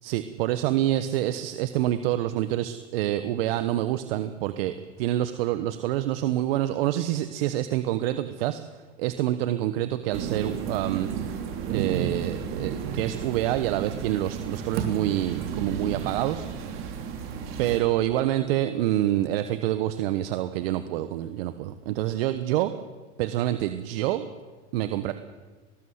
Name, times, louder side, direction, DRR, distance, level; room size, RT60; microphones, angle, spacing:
voice 1, 0.0-8.6 9.0-11.4 11.7-16.9 17.6-22.7 23.2-24.3 24.7-25.1, right 13 dB, 55° right, 11 dB, 1.2 m, -27 dB
sound 1, 10.1-17.8, right 7 dB, 35° right, 3.7 m, -33 dB
19.0 x 19.0 x 8.1 m, 1.3 s
supercardioid pair, 135°, 35 cm